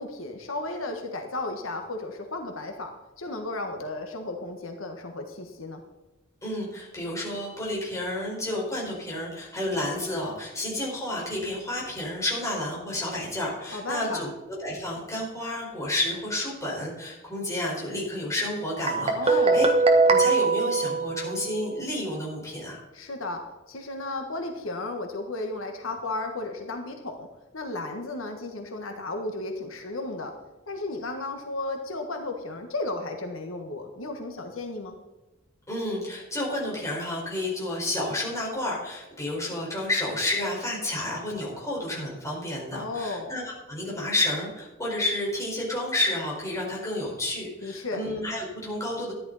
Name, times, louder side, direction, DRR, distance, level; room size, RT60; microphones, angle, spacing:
voice 1, 0.0-5.8 13.7-14.3 19.1-19.7 22.9-27.3 27.5-30.3 30.7-34.9 42.7-43.4 47.6-48.0, left 2 dB, 85° left, 4 dB, 1.5 m, -34 dB
voice 2, 6.4-14.3 14.6-19.7 20.1-22.8 35.7-43.4 43.7-49.1, left 1 dB, 15° left, -4 dB, 4.8 m, -30 dB
Guitar, 18.9-21.7, right 3 dB, 30° right, 1.4 m, -21 dB
14.0 x 11.0 x 4.1 m, 1.1 s
head